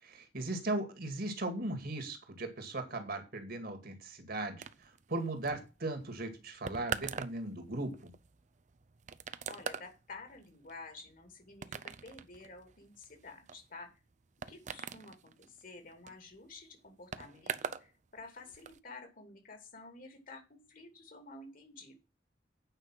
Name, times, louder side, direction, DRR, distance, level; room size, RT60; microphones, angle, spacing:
voice 1, 0.0-8.1, right 2 dB, 60° right, 7 dB, 2.3 m, -38 dB
sound 1, 4.6-17.9 18.2-18.8, right 6 dB, 45° right, 0.6 m, -44 dB
voice 2, 9.5-13.9 14.5-21.9, left 3 dB, 55° left, 5 dB, 2.8 m, -51 dB
9.0 x 5.4 x 7.5 m, 0.30 s
head